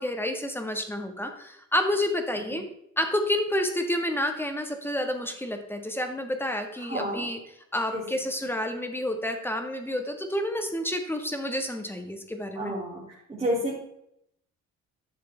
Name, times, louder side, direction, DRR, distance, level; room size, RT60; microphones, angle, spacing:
voice 1, 0.0-2.6 3.0-7.4 7.7-12.7, left 1 dB, 5° left, 5 dB, 1.6 m, -29 dB
voice 2, 6.9-7.3 7.9-8.0 12.5-13.0 13.3-13.8, equal, 20° right, -7 dB, 2.9 m, -29 dB
11.0 x 6.7 x 3.4 m, 0.75 s
cardioid pair, 90°, 30 cm